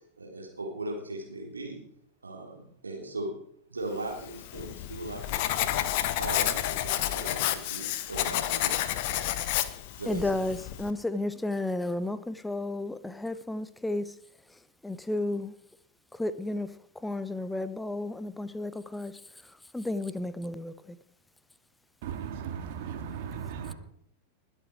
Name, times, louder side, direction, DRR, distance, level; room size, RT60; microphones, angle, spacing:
voice 1, 0.2-1.8 2.2-3.3 3.7-8.9 10.0-10.4, right 2 dB, 75° right, 3.6 m, -38 dB
Writing, 4.2-10.9, left 13 dB, 50° left, 1.0 m, -30 dB
voice 2, 10.1-14.1 14.8-15.5 16.1-16.7 17.0-19.1 19.7-20.7, left 2 dB, 5° left, 0.8 m, -32 dB
voice 3, 22.0-23.7, right 7 dB, 50° right, 2.0 m, -36 dB
20.5 x 8.2 x 4.8 m
figure-of-eight pair, 90°, 0 cm